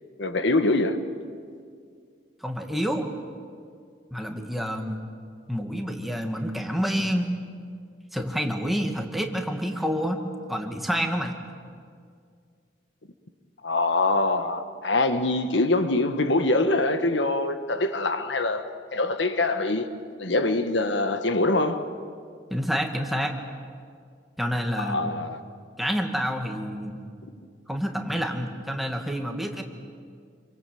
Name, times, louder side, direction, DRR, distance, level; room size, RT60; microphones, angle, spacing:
voice 1, 0.2-1.0 13.6-19.9 20.2-21.9 24.8-25.4 27.2-27.3, left 2 dB, 75° left, 1.4 m, -24 dB
voice 2, 2.4-3.1 4.1-5.0 5.5-7.4 8.1-10.2 10.5-11.3 22.5-23.3 24.4-25.1 25.8-27.1 27.7-29.6, equal, ahead, 2.1 m, -28 dB
27.5 x 24.5 x 7.8 m
head